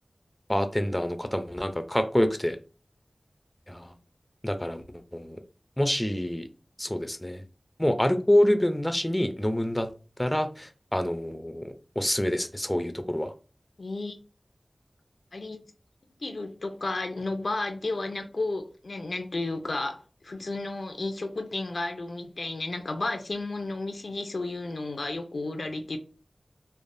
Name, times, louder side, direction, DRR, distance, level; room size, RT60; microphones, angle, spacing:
voice 1, 0.5-2.6 3.7-3.9 4.4-4.8 5.1-5.4 5.8-6.5 6.8-7.4 7.8-9.9 10.2-13.3, left 1 dB, 15° left, 0.4 m, -26 dB
voice 2, 13.8-14.2 15.3-15.6 16.2-26.0, left 2 dB, 80° left, 0.4 m, -32 dB
3.2 x 2.0 x 2.6 m
wide cardioid pair, 55°, 0 cm